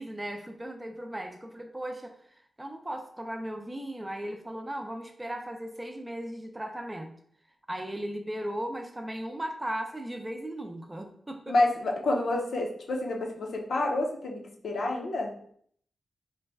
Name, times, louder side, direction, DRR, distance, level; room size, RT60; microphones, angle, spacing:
voice 1, 0.0-2.2 2.6-7.2 7.7-11.5, right 1 dB, 15° right, 5 dB, 0.5 m, -37 dB
voice 2, 11.5-15.3, left 2 dB, 75° left, 0 dB, 0.7 m, -28 dB
3.9 x 2.1 x 3.4 m, 0.63 s
wide cardioid pair, 110°, 0 cm